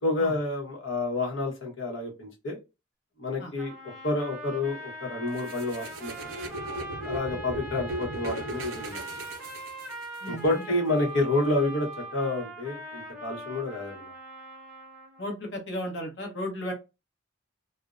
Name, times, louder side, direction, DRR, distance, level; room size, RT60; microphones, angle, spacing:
voice 1, 0.0-2.6 3.2-3.8 4.0-6.1 6.4-6.5 7.0-9.3 10.3-14.1, left 2 dB, 85° left, 0 dB, 1.0 m, -29 dB
sound 1, 3.6-15.3, right 2 dB, 5° right, 0.7 m, -41 dB
sound 2, 5.4-10.3, right 1 dB, 85° right, 0.5 m, -37 dB
voice 2, 15.2-16.7, left 1 dB, 65° left, 1 dB, 1.0 m, -34 dB
2.6 x 2.1 x 2.3 m, 0.26 s
head